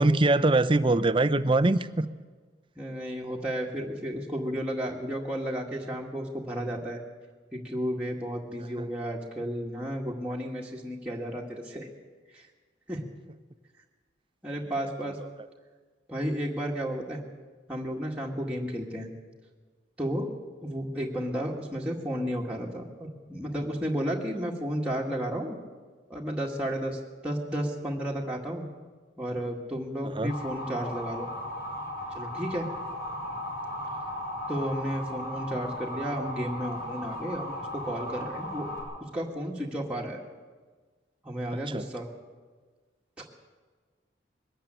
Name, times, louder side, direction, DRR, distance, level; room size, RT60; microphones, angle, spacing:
voice 1, 0.0-2.1 8.8-8.9 14.8-14.9 30.0-30.3 41.7-41.8, right 2 dB, 25° right, 13 dB, 0.6 m, -23 dB
voice 2, 2.8-7.0 7.5-11.9 12.3-12.5 12.9-13.0 14.4-15.2 16.1-17.2 17.7-19.1 20.0-25.6 26.1-28.6 29.2-31.3 32.1-32.7 34.5-38.7 39.1-40.2 41.2-42.1, equal, 5° right, -3 dB, 1.9 m, -33 dB
Motor vehicle (road) / Siren, 30.3-38.8, left 1 dB, 55° left, 7.5 m, -36 dB
22.0 x 13.0 x 9.0 m, 1.4 s
head